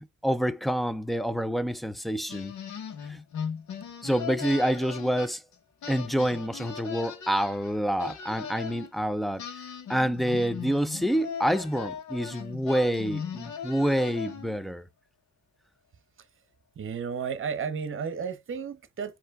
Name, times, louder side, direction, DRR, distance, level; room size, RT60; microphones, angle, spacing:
voice 1, 0.2-2.5 3.0-3.2 4.0-5.4 5.9-9.4 9.9-14.9, equal, ahead, 0.5 m, -27 dB
sound 1, 2.3-5.6 5.8-8.9 9.4-14.7, left 7 dB, 75° left, 1.4 m, -38 dB
voice 2, 16.8-19.2, right 6 dB, 45° right, 0.9 m, -33 dB
4.4 x 2.9 x 3.6 m
cardioid pair, 90°, 30 cm